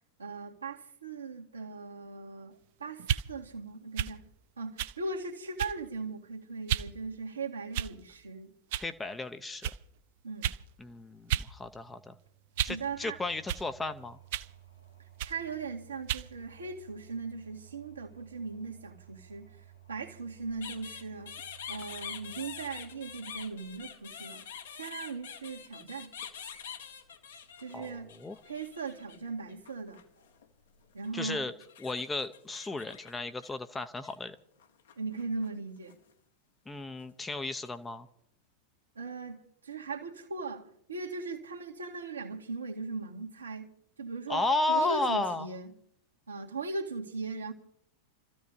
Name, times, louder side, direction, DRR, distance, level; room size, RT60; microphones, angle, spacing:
voice 1, 0.2-4.2 4.6-8.5 10.2-10.5 12.7-13.2 15.3-19.5 19.9-21.4 21.7-24.5 24.7-26.1 27.6-28.1 28.5-30.0 30.9-31.5 35.0-36.0 39.0-43.7 44.0-44.4 44.7-45.7 46.3-47.5, right 4 dB, 75° right, 1.8 m, -39 dB
sound 1, 3.0-3.3 4.0-4.2 4.8-5.0 5.6-5.9 6.7-6.9 7.7-8.1 8.7-8.9 9.6-9.8 10.4-10.6 11.3-11.5 11.9-12.8 13.5-13.7 14.3-14.5 15.2-15.4 16.1-16.3, right 11 dB, 50° right, 0.5 m, -32 dB
voice 2, 8.7-9.7 10.8-12.1 12.6-14.2 27.7-28.4 31.1-31.5 31.8-34.4 36.7-38.1 44.3-45.5, left 2 dB, 10° left, 0.8 m, -33 dB
sound 2, 12.5-31.5, right 8 dB, 90° left, 3.0 m, -58 dB
sound 3, 20.6-29.2 29.5-30.5 31.0-34.1 34.6-35.5 35.8-36.1 37.0-37.7, left 8 dB, 65° left, 1.4 m, -46 dB
30.0 x 14.0 x 2.8 m
figure-of-eight pair, 90°, 0 cm